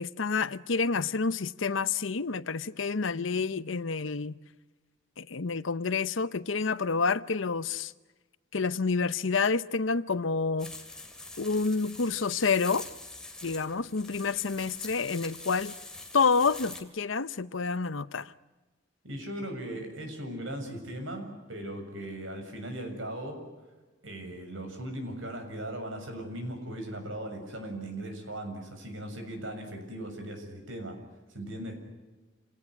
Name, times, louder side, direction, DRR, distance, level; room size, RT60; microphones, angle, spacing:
voice 1, 0.0-4.3 5.2-7.9 8.5-10.7 11.4-12.8 13.4-15.7 16.1-18.3, left 4 dB, 85° left, 0.8 m, -28 dB
sound 1, 10.6-16.8, left 2 dB, 5° left, 2.5 m, -44 dB
voice 2, 19.0-23.4 24.0-31.0 31.3-31.8, right 1 dB, 85° right, 6.8 m, -38 dB
28.0 x 18.0 x 9.7 m
head